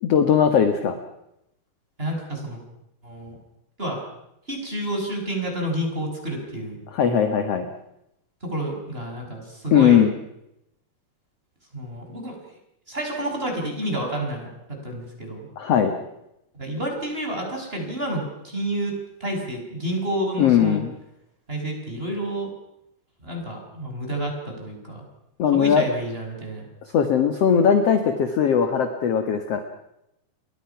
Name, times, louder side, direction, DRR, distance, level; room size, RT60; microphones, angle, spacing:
voice 1, 0.0-1.0 6.9-7.7 9.7-10.1 15.6-15.9 20.4-20.9 25.4-25.8 26.9-29.6, left 8 dB, 55° left, 8 dB, 1.8 m, -19 dB
voice 2, 2.0-2.6 3.0-3.4 3.8-4.0 4.5-6.8 8.4-10.1 11.7-12.4 12.9-15.5 16.5-20.8 21.5-22.5 23.2-25.1 25.5-26.7, right 1 dB, 15° right, 1 dB, 6.5 m, -29 dB
29.5 x 23.0 x 5.9 m, 0.82 s
omnidirectional pair, 4.8 m